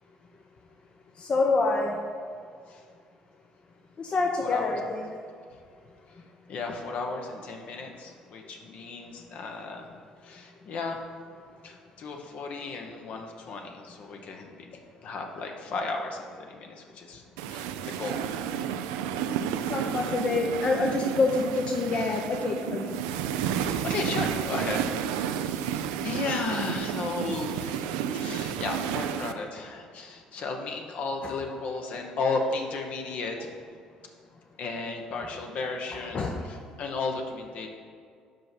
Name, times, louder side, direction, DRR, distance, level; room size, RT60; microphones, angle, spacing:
voice 1, 1.2-2.0 4.0-5.1 19.7-22.9 31.2-31.3 36.1-36.4, left 3 dB, 40° left, 1 dB, 0.7 m, -26 dB
voice 2, 4.4-4.8 6.5-9.9 10.2-11.0 11.6-14.7 15.0-18.3 23.5-33.5 34.6-37.7, left 3 dB, 60° left, 2 dB, 1.0 m, -34 dB
sound 1, 17.4-29.3, right 9 dB, 80° right, 0.3 m, -31 dB
5.4 x 5.2 x 6.0 m, 2.2 s
hypercardioid pair, 60°, 3 cm